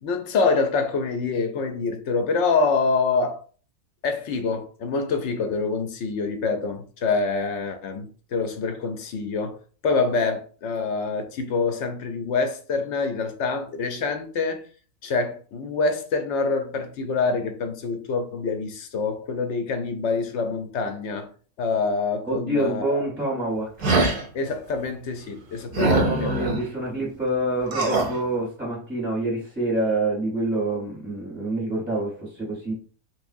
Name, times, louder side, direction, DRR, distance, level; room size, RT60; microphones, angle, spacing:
voice 1, 0.0-3.4 4.0-14.7 15.0-21.3 21.6-23.0 24.3-26.3, left 4 dB, 65° left, 0.8 m, -26 dB
voice 2, 22.3-24.0 25.8-32.7, right 2 dB, 10° right, 0.8 m, -27 dB
sound 1, 23.8-24.2 25.7-26.6 27.7-28.1, right 2 dB, 50° right, 0.7 m, -22 dB
3.4 x 3.1 x 2.6 m
omnidirectional pair, 1.5 m